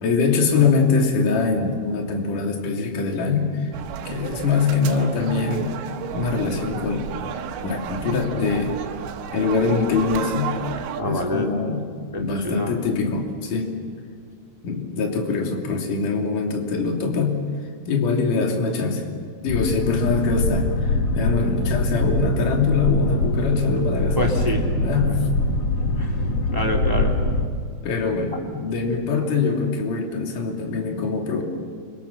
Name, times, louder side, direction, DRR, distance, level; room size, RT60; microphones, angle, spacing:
voice 1, 0.0-3.7 4.1-5.7 6.1-7.1 7.6-8.7 9.3-10.6 11.0-11.8 12.2-13.9 14.6-17.4 17.9-19.0 19.4-24.3 24.8-25.2 27.8-31.4, left 4 dB, 45° left, 1 dB, 4.0 m, -23 dB
sound 1, 3.7-11.0, right 8 dB, 85° right, 3.9 m, -33 dB
voice 2, 11.0-11.5 12.1-12.7 24.1-24.7 25.0-25.2 26.0-26.2 26.5-27.1, equal, 10° right, 0 dB, 1.2 m, -26 dB
Boat Water vehicle, 19.5-27.5, left 2 dB, 65° left, 1.6 m, -23 dB
30.0 x 26.0 x 7.2 m, 2.1 s
omnidirectional pair, 5.6 m